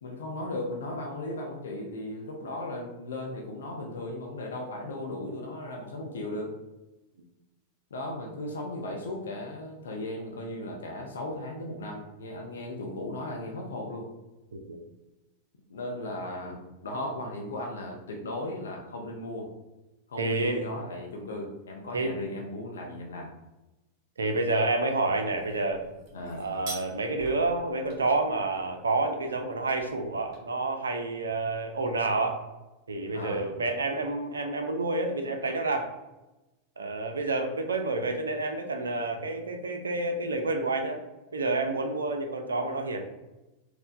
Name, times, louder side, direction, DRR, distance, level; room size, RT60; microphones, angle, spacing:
voice 1, 0.0-6.6 7.9-14.1 15.7-16.6 16.8-19.5 20.1-23.3 26.1-26.5 33.1-33.5, left 1 dB, 65° left, 0 dB, 0.5 m, -36 dB
voice 2, 20.2-20.6 21.9-22.1 24.2-25.8 26.4-32.4 32.9-35.9 36.8-41.0 41.3-43.0, right 2 dB, 70° right, 4 dB, 0.4 m, -29 dB
sound 1, 25.3-30.4, right 2 dB, 40° right, 1.0 m, -47 dB
4.3 x 2.1 x 2.5 m, 1.0 s
figure-of-eight pair, 90°, 0 cm